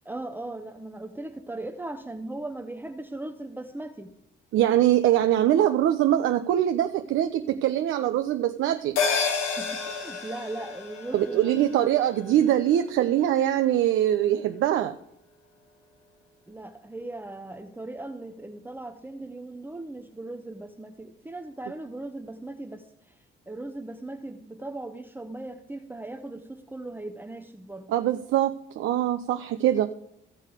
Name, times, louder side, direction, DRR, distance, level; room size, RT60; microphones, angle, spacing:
voice 1, 0.0-4.1 9.6-11.6 16.5-23.1 23.5-27.9, right 2 dB, 10° right, 4 dB, 0.8 m, -38 dB
voice 2, 4.5-9.0 11.1-15.0 27.9-29.9, right 12 dB, 80° right, 7 dB, 0.6 m, -23 dB
sound 1, 9.0-13.7 14.0-14.1, left 5 dB, 80° left, 1.8 m, -31 dB
15.5 x 6.5 x 5.0 m, 0.73 s
cardioid pair, 90°, 20 cm